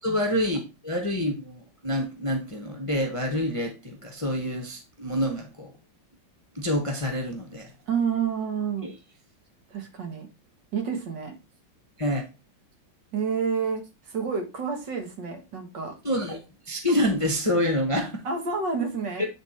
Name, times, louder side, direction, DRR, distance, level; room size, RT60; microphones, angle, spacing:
voice 1, 0.0-5.7 6.5-7.7 8.8-8.9 12.0-12.2 16.0-16.4 16.7-18.2, left 1 dB, 20° left, 0.9 m, -27 dB
voice 2, 7.9-8.9 9.7-10.3 10.7-11.3 13.1-16.0 18.2-19.3, right 6 dB, 65° right, 2.2 m, -29 dB
9.0 x 3.8 x 4.2 m
omnidirectional pair, 2.1 m